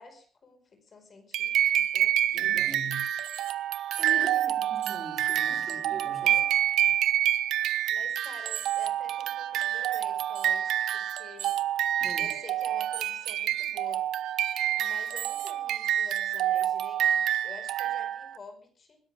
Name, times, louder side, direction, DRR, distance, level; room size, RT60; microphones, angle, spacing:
voice 1, 0.0-2.6 4.1-4.7 6.2-6.5 7.9-11.6 12.2-14.1 14.8-19.0, left 4 dB, 35° left, 7 dB, 5.3 m, -49 dB
sound 1, 1.3-18.4, right 11 dB, 85° right, 1.4 m, -27 dB
voice 2, 2.3-3.1 4.0-6.4 12.0-12.3, right 3 dB, 20° right, 2 dB, 5.6 m, -42 dB
21.5 x 17.0 x 3.6 m, 0.40 s
cardioid pair, 155°, 0 cm